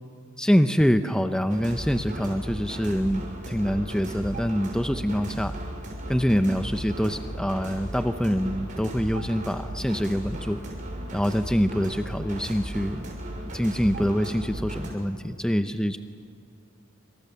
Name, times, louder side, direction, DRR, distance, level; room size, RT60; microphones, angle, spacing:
voice 1, 0.4-5.5 6.1-10.6 11.1-13.1 13.5-16.0, equal, 5° left, 8 dB, 0.6 m, -25 dB
sound 1, 1.5-14.9, right 1 dB, 40° right, 6.3 m, -36 dB
27.5 x 26.0 x 6.9 m, 2.2 s
head